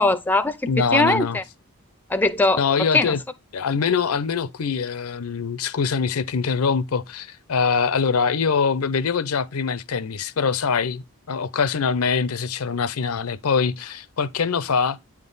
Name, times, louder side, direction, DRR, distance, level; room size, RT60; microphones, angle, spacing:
voice 1, 0.0-0.6 0.9-1.4 2.1-3.2, left 2 dB, 10° left, 0.4 m, -20 dB
voice 2, 0.7-1.4 2.6-3.2 3.5-15.0, left 5 dB, 85° left, 0.6 m, -23 dB
9.0 x 3.7 x 4.0 m
head